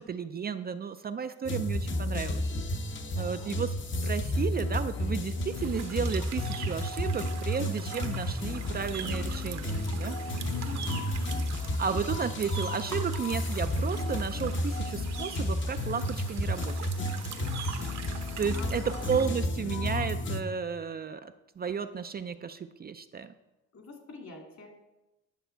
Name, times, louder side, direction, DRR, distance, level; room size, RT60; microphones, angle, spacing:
voice 1, 0.0-2.4 3.1-3.7 4.0-10.2 11.8-16.9 18.4-18.8 19.1-23.3, right 6 dB, 30° right, 9 dB, 0.4 m, -33 dB
sound 1, 1.5-20.4, left 1 dB, 40° left, 0.9 m, -32 dB
voice 2, 3.1-3.5 10.4-11.4 18.5-19.1 23.7-24.7, left 4 dB, 60° left, 2 dB, 2.5 m, -45 dB
sound 2, 5.5-19.3, right 8 dB, 65° right, 1.0 m, -44 dB
10.5 x 6.0 x 4.5 m, 1.0 s
cardioid pair, 90°, 30 cm